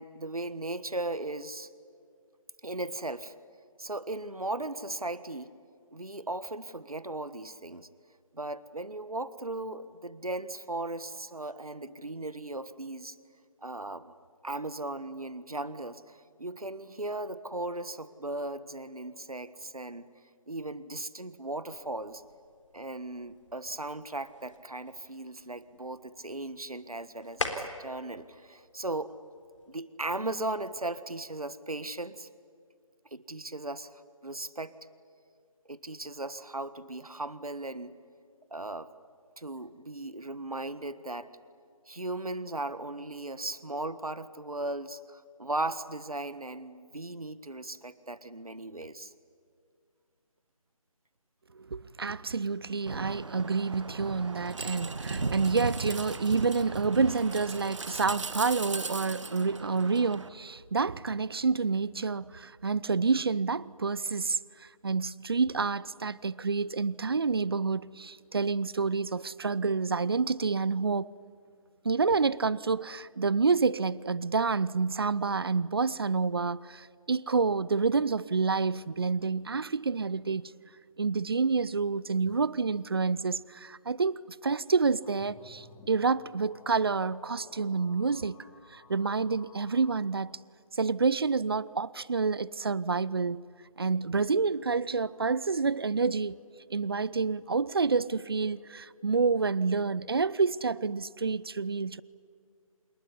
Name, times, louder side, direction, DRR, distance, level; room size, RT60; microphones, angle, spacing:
voice 1, 0.0-1.7 2.6-3.3 3.8-5.5 5.9-7.9 8.3-13.2 13.6-14.1 14.4-20.1 20.5-22.2 22.7-29.1 29.7-32.3 33.1-34.7 35.6-37.9 38.5-38.9 39.4-41.3 41.9-49.1, right 2 dB, 80° right, 1.5 m, -37 dB
sound 1, 21.8-29.8, left 2 dB, 60° left, 3.8 m, -44 dB
voice 2, 51.5-71.1 71.8-80.4 81.0-88.4 88.7-90.4 90.7-93.4 93.8-96.4 96.7-102.0, right 4 dB, 40° right, 0.6 m, -28 dB
sound 2, 52.9-60.3, right 3 dB, 55° right, 1.4 m, -37 dB
sound 3, 85.0-90.0, left 4 dB, 10° left, 1.5 m, -55 dB
27.0 x 21.5 x 9.9 m
figure-of-eight pair, 155°, 18 cm